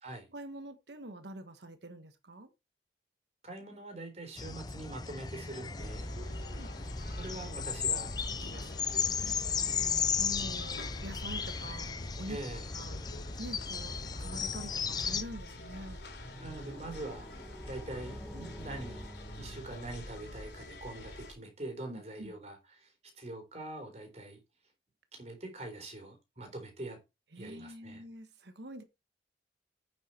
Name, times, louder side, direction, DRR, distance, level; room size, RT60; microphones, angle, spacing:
voice 1, 0.3-2.5 6.1-6.7 9.2-9.4 10.2-11.9 12.2-12.4 12.7-13.0 13.4-16.0 18.3-18.5 21.9-22.3 27.3-28.8, right 1 dB, 80° right, 1.4 m, -45 dB
voice 2, 3.4-6.1 7.2-8.1 8.4-8.8 12.3-12.7 16.4-17.3 17.7-19.0 19.4-22.9 23.2-24.4 25.1-27.0 27.4-28.0, right 2 dB, 40° right, 4.0 m, -44 dB
sound 1, 4.4-15.2, left 6 dB, 20° left, 0.5 m, -35 dB
sound 2, 5.7-21.3, left 1 dB, 75° left, 3.5 m, -45 dB
sound 3, 15.5-20.2, equal, ahead, 1.6 m, -48 dB
9.2 x 7.5 x 4.4 m
head